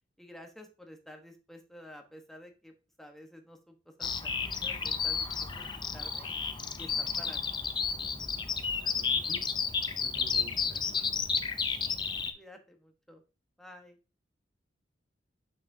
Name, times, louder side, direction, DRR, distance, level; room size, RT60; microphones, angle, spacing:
voice 1, 0.2-2.7 3.0-5.3 5.6-5.7 5.9-6.4 6.8-7.6 12.3-13.2 13.6-14.0, left 1 dB, ahead, 3 dB, 1.1 m, -51 dB
Bird vocalization bird call bird song, 4.0-12.3, left 5 dB, 25° left, 0.5 m, -32 dB
voice 2, 8.8-9.4 10.0-11.1, left 1 dB, 55° right, -1 dB, 2.3 m, -50 dB
6.8 x 6.2 x 2.7 m, 0.31 s
head